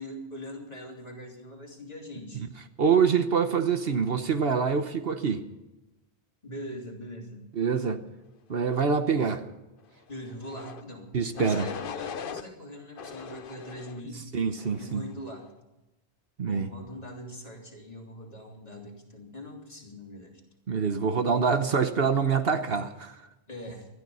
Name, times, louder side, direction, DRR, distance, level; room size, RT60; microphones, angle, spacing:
voice 1, 0.0-2.4 6.4-7.4 10.1-11.1 11.3-14.2 14.8-15.4 16.4-20.4 23.5-23.9, equal, 35° left, -1 dB, 3.4 m, -42 dB
voice 2, 2.8-5.4 7.6-8.0 8.5-9.4 11.1-11.7 14.3-15.0 16.4-16.7 20.7-23.2, right 6 dB, 60° right, 8 dB, 1.2 m, -25 dB
sound 1, 10.4-10.8 11.4-12.4 13.0-14.0 14.6-15.0, left 7 dB, 55° left, 0.9 m, -39 dB
19.5 x 13.0 x 5.5 m, 1.0 s
omnidirectional pair, 1.1 m